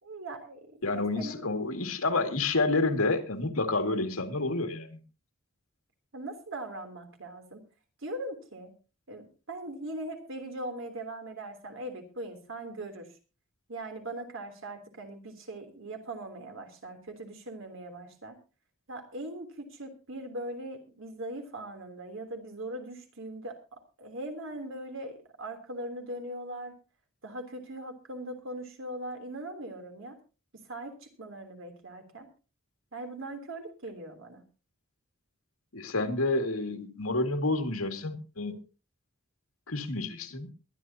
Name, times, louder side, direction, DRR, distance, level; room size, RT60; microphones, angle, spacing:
voice 1, 0.0-1.5 6.1-7.6 8.0-8.7 9.1-13.1 13.7-18.4 18.9-26.8 27.2-30.2 30.7-32.3 32.9-34.4, right 1 dB, 65° right, 3.2 m, -40 dB
voice 2, 0.8-5.0 35.7-38.6 39.7-40.5, left 2 dB, 85° left, 2.2 m, -29 dB
22.0 x 11.5 x 2.8 m
head